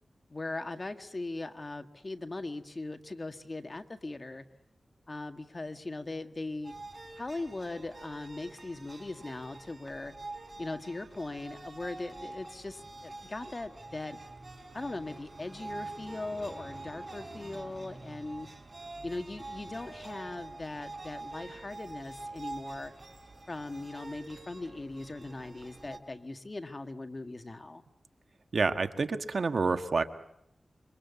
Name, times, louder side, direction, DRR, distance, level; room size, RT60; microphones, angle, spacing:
voice 1, 0.3-4.4 5.1-6.7 7.2-10.1 10.6-14.2 14.7-18.5 19.0-22.9 23.5-27.8, left 2 dB, 35° left, 7 dB, 1.8 m, -39 dB
sound 1, 6.6-26.0, right 2 dB, 35° right, 4.6 m, -46 dB
voice 2, 28.5-30.0, right 4 dB, 65° right, 8 dB, 1.6 m, -28 dB
27.0 x 24.5 x 8.4 m, 0.81 s
wide cardioid pair, 90°, 0 cm